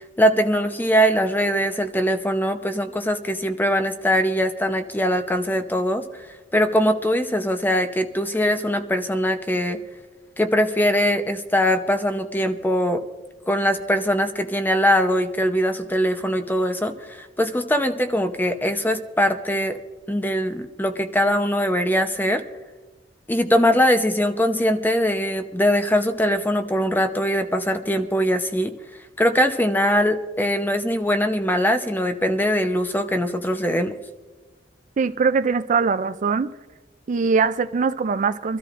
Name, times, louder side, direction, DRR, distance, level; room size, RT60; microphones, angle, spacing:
voice 1, 0.2-6.0 6.5-9.8 10.4-13.0 13.5-19.8 20.1-22.4 23.3-28.7 29.2-33.9, equal, 10° left, 0.8 m, -21 dB
voice 2, 35.0-36.5 37.1-38.6, right 5 dB, 45° right, 0.4 m, -21 dB
25.5 x 13.5 x 2.5 m
head